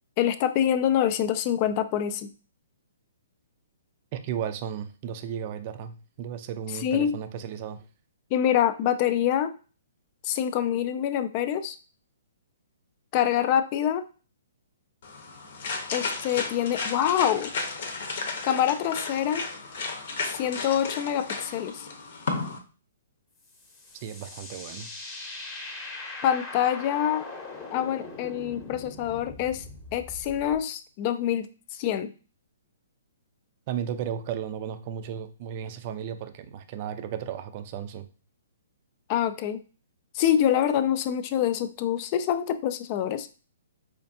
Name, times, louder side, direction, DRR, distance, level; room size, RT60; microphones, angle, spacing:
voice 1, 0.2-2.3 6.8-7.1 8.3-9.5 10.2-11.8 13.1-14.0 15.9-17.5 18.4-19.4 20.3-21.9 26.2-27.3 27.7-29.6 29.9-32.1 39.1-39.6 40.1-43.3, left 10 dB, 35° left, 10 dB, 0.4 m, -25 dB
voice 2, 4.1-7.8 24.0-24.9 33.7-38.1, right 9 dB, 40° right, 9 dB, 0.4 m, -34 dB
sound 1, 15.0-22.6, left 4 dB, 60° left, 0.7 m, -34 dB
sound 2, 23.4-30.6, left 3 dB, 20° left, 0.8 m, -41 dB
4.3 x 2.4 x 2.6 m, 0.36 s
hypercardioid pair, 130°, 0 cm